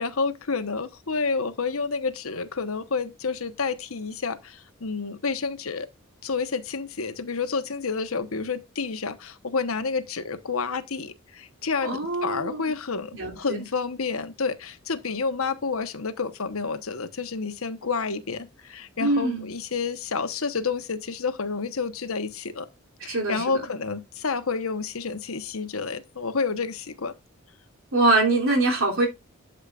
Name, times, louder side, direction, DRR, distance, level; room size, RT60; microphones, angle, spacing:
voice 1, 0.0-5.9 6.2-22.7 23.0-27.1, left 4 dB, 85° left, 1.1 m, -29 dB
voice 2, 11.8-12.6 13.1-13.6 19.0-19.5 23.0-23.7 27.9-29.1, right 2 dB, 75° right, 3.0 m, -24 dB
12.0 x 7.3 x 2.4 m
head